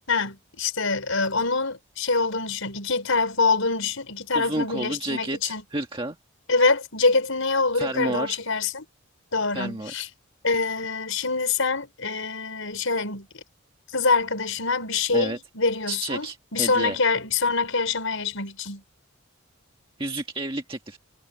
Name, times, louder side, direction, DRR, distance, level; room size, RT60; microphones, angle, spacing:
voice 1, 0.1-5.6 6.5-8.8 9.3-10.1 10.4-13.3 13.9-16.3 16.5-18.8, left 4 dB, 75° left, 5.1 m, -25 dB
voice 2, 4.3-6.2 7.7-8.4 9.5-9.9 15.1-15.4 15.9-17.0 20.0-21.0, right 2 dB, 25° right, 1.8 m, -30 dB
head